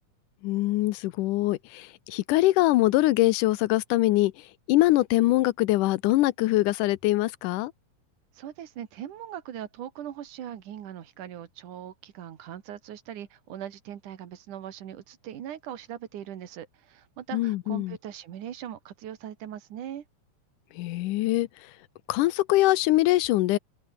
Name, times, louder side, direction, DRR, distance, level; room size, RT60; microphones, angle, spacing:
voice 1, 0.4-7.7 17.3-18.0 20.7-21.7 22.1-23.6, left 17 dB, 90° left, 2.3 m, -23 dB
voice 2, 8.3-20.0, right 10 dB, 80° right, 3.4 m, -40 dB
omnidirectional pair, 3.6 m